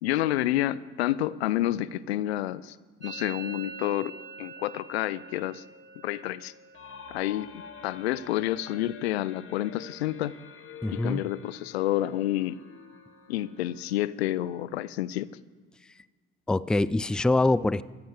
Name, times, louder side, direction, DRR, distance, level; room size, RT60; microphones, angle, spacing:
voice 1, 0.0-2.8 3.0-5.6 6.0-6.5 7.1-10.4 10.9-12.6 13.3-15.3, left 14 dB, 85° left, 20 dB, 0.5 m, -29 dB
Musical instrument, 3.0-10.7 10.9-11.5 11.8-12.3 12.6-14.6, right 6 dB, 35° right, 1.5 m, -48 dB
sound 1, 6.7-14.4, left 7 dB, 40° left, 1.5 m, -48 dB
voice 2, 10.8-11.2 16.5-17.8, left 2 dB, 5° left, 19 dB, 0.3 m, -24 dB
16.0 x 14.5 x 4.8 m, 1.5 s
hypercardioid pair, 55°, 31 cm